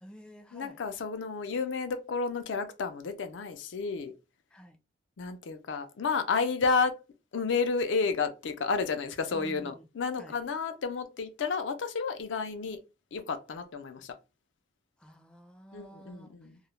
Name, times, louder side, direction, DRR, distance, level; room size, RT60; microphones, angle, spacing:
voice 1, 0.0-0.8 4.5-4.8 9.3-9.8 10.2-10.4 15.0-16.3, equal, 5° left, 0.4 m, -50 dB
voice 2, 0.5-4.1 5.2-6.9 7.3-12.8 13.1-14.1 15.7-16.6, left 4 dB, 85° left, 0.4 m, -31 dB
2.3 x 2.0 x 2.9 m
head